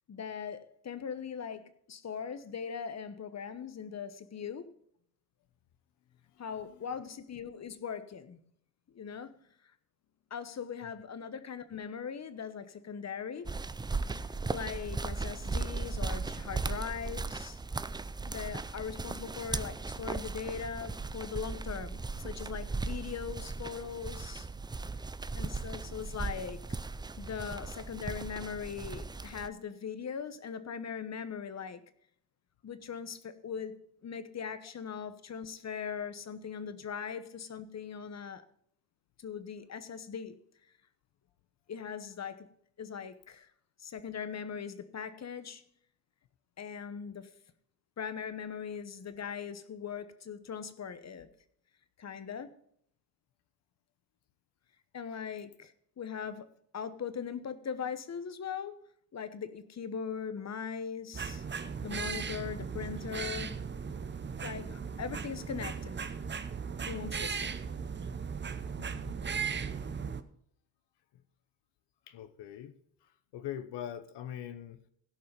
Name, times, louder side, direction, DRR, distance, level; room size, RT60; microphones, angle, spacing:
voice 1, 0.1-4.7 6.4-8.4 8.9-9.3 10.3-13.5 14.2-17.6 18.3-24.5 25.3-26.8 27.2-31.8 32.6-38.4 39.2-40.4 41.7-42.5 42.8-43.5 43.8-45.6 46.6-47.3 48.0-51.3 52.0-52.6 54.9-58.8 59.1-61.4 61.8-63.6 64.4-66.0 66.9-67.6, left 7 dB, 40° left, 1.1 m, -40 dB
sound 1, 13.5-29.5, right 3 dB, 10° right, 0.4 m, -37 dB
sound 2, 61.1-70.2, right 6 dB, 25° right, 0.8 m, -37 dB
voice 2, 68.8-69.2 69.6-69.8 72.1-72.7 73.0-74.9, left 10 dB, 75° left, 1.0 m, -43 dB
16.5 x 5.5 x 5.2 m
supercardioid pair, 75°, 42 cm